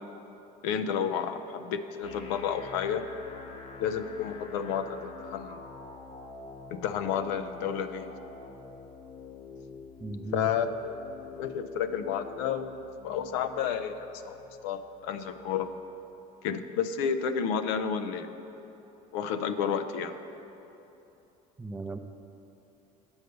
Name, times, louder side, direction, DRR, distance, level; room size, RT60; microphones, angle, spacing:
voice 1, 0.6-3.0 3.8-5.6 6.7-8.1 10.3-10.9 11.3-14.4 14.6-15.7 16.4-18.3 19.1-20.1, left 7 dB, 85° left, 9 dB, 0.5 m, -31 dB
sound 1, 2.0-16.0, left 4 dB, 35° left, 0.9 m, -47 dB
voice 2, 10.0-10.5 21.6-22.0, right 2 dB, 10° right, 7 dB, 0.5 m, -36 dB
8.0 x 5.3 x 6.6 m, 3.0 s
supercardioid pair, 100°, 16 cm